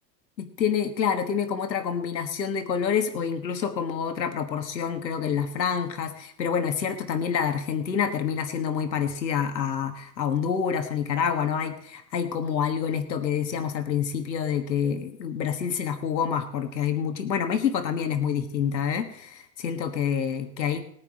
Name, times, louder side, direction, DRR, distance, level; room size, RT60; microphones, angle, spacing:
voice 1, 0.4-20.8, left 7 dB, 90° left, 6 dB, 1.5 m, -27 dB
19.0 x 9.7 x 3.6 m, 0.70 s
hypercardioid pair, 100°, 50 cm